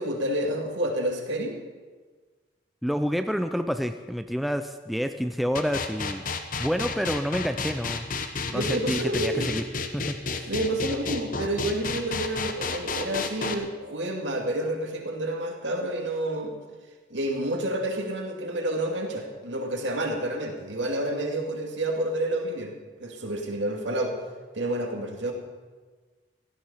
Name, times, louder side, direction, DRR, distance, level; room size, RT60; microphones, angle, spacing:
voice 1, 0.0-1.6 8.5-9.5 10.5-16.6 17.1-22.7 23.0-24.2 24.5-25.3, right 1 dB, 70° right, 2 dB, 2.5 m, -29 dB
voice 2, 2.8-6.2 6.6-8.1 8.5-9.6 9.9-10.5, equal, ahead, 7 dB, 0.4 m, -28 dB
sound 1, 5.5-13.5, left 4 dB, 45° left, 1.0 m, -31 dB
16.5 x 13.5 x 5.6 m, 1.4 s
head